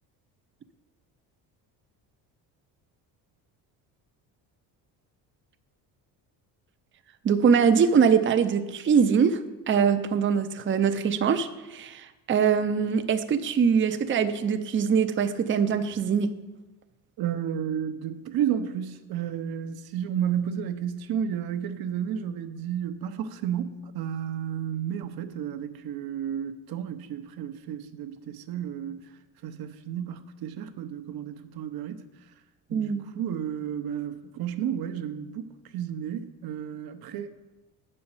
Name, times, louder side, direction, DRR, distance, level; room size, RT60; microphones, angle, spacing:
voice 1, 7.2-9.4 9.7-16.3 32.7-33.0, right 6 dB, 30° right, 8 dB, 0.6 m, -23 dB
voice 2, 17.2-32.3 32.7-37.3, right 9 dB, 60° right, 9 dB, 0.9 m, -32 dB
7.6 x 5.5 x 7.2 m, 1.1 s
supercardioid pair, 95°, 41 cm